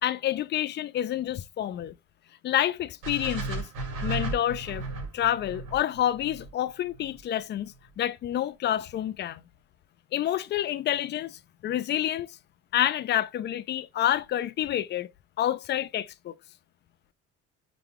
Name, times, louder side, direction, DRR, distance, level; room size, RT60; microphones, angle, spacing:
voice 1, 0.0-1.9 2.4-3.7 4.0-4.8 5.1-9.4 10.1-12.3 12.7-15.1 15.4-16.3, left 11 dB, 35° left, 0.4 m, -28 dB
sound 1, 3.0-7.2, right 3 dB, 85° right, 3.0 m, -35 dB
5.9 x 2.3 x 3.5 m
cardioid pair, 140°, 30 cm